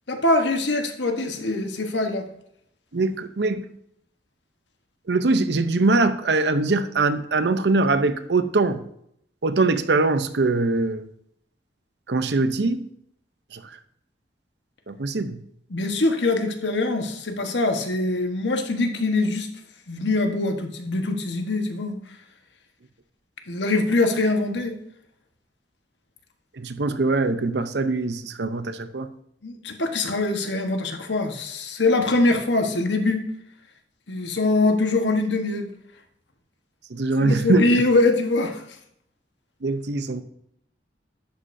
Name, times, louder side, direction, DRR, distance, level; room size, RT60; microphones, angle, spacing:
voice 1, 0.1-2.3 15.7-19.5 19.9-22.0 23.5-24.7 29.4-33.2 34.1-35.7 37.2-38.6, left 2 dB, 90° left, 1.3 m, -23 dB
voice 2, 2.9-3.7 5.1-8.8 9.4-11.0 12.1-12.8 13.5-13.6 14.9-15.4 26.6-29.1 36.9-37.7 39.6-40.2, right 3 dB, 70° right, 0.7 m, -22 dB
11.5 x 8.3 x 2.7 m
head